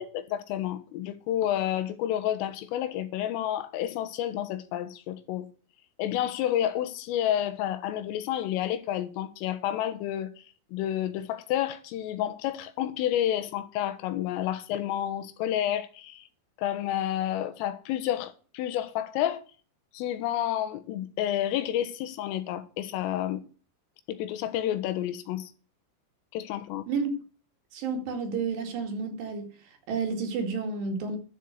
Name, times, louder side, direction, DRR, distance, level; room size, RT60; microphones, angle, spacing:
voice 1, 0.0-5.5 6.0-10.3 10.7-16.3 16.6-19.4 19.9-23.4 24.1-25.5 26.3-26.8, left 11 dB, 80° left, 3.7 m, -30 dB
voice 2, 27.7-29.5 29.9-31.2, right 5 dB, 60° right, 3.9 m, -30 dB
12.0 x 6.7 x 8.0 m
omnidirectional pair, 5.9 m